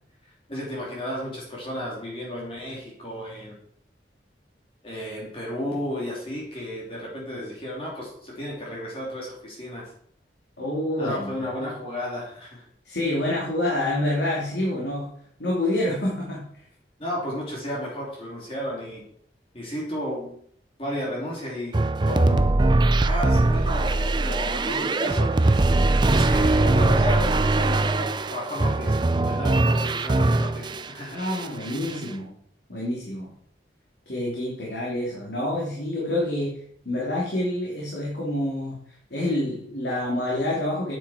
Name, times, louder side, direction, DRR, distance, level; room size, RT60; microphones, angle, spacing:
voice 1, 0.5-3.6 4.8-9.9 11.0-12.6 17.0-19.0 19.5-20.4 20.8-21.8 22.0-22.4 23.0-25.3 26.1-29.0 29.2-31.2, equal, 30° left, -4 dB, 3.2 m, -33 dB
voice 2, 10.6-11.7 12.8-15.1 15.4-16.4 31.1-32.3 32.7-33.3 34.1-36.5 36.8-38.8 39.1-40.9, left 1 dB, 80° left, -4 dB, 3.0 m, -27 dB
sound 1, 21.7-30.9 31.2-32.0, right 2 dB, 25° right, 0.4 m, -21 dB
9.7 x 9.0 x 4.4 m, 0.64 s
head